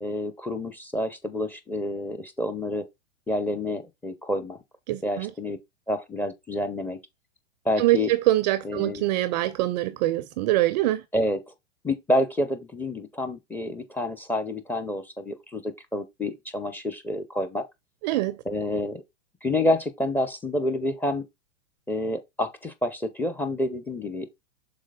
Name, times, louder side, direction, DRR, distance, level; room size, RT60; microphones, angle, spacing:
voice 1, 0.0-2.8 3.3-4.6 5.0-5.6 5.9-7.0 7.6-8.1 8.6-9.1 11.1-11.4 11.8-17.6 18.4-19.0 19.4-21.2 21.9-24.4, left 1 dB, 5° left, 0.7 m, -28 dB
voice 2, 4.9-5.3 7.8-11.0 18.0-18.4, right 16 dB, 35° right, 0.4 m, -24 dB
6.3 x 4.3 x 3.7 m
hypercardioid pair, 125°, 36 cm